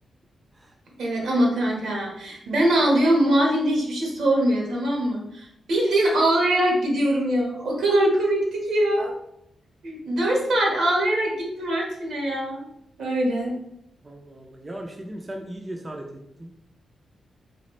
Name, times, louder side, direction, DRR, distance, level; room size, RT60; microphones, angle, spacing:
voice 1, 1.0-9.2 9.8-12.7 13.0-13.6, right 1 dB, 80° right, -1 dB, 1.3 m, -22 dB
voice 2, 14.0-16.5, right 1 dB, 20° right, 2 dB, 0.4 m, -38 dB
4.1 x 3.4 x 3.2 m, 0.79 s
wide cardioid pair, 120°, 0 cm